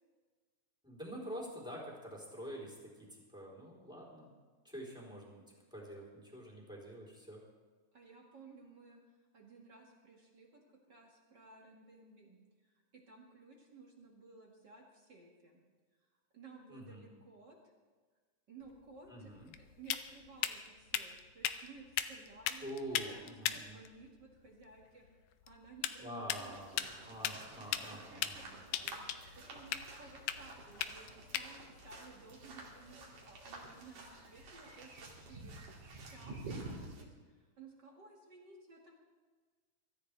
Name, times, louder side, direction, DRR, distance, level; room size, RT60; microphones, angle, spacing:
voice 1, 0.8-4.3 4.6-5.4 5.7-7.4 16.7-17.1 19.1-19.5 22.6-23.8 26.0-28.6, equal, ahead, -4 dB, 3.4 m, -47 dB
voice 2, 7.9-9.0 9.3-15.6 16.3-17.6 18.5-19.3 19.6-25.1 25.5-26.9 27.8-35.6 36.0-38.9, right 3 dB, 35° right, -2 dB, 2.1 m, -57 dB
sound 1, 18.6-33.3, left 11 dB, 80° left, 2.0 m, -41 dB
sound 2, 26.4-37.0, right 2 dB, 65° right, 3.9 m, -50 dB
24.0 x 13.5 x 3.4 m, 1.5 s
omnidirectional pair, 4.0 m